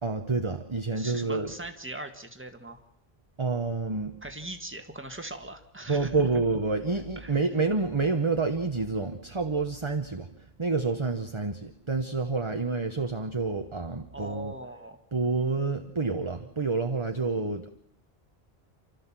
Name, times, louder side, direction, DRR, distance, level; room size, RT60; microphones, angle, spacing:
voice 1, 0.0-1.5 3.4-4.2 5.9-10.3 10.6-14.5 15.1-17.7, right 3 dB, 30° right, 6 dB, 1.1 m, -28 dB
voice 2, 1.0-2.8 4.2-6.2 7.2-7.4 14.1-15.0, right 2 dB, 10° right, 5 dB, 1.7 m, -40 dB
29.0 x 13.5 x 7.5 m, 0.70 s
omnidirectional pair, 1.0 m